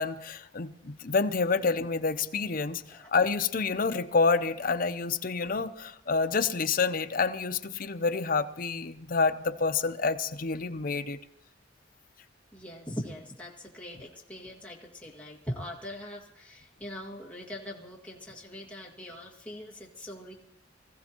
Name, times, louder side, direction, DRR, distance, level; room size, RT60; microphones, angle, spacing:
voice 1, 0.0-11.2, left 4 dB, 50° left, 8 dB, 0.7 m, -28 dB
voice 2, 12.5-20.3, equal, 5° left, -3 dB, 2.1 m, -41 dB
25.0 x 15.0 x 3.0 m, 0.78 s
head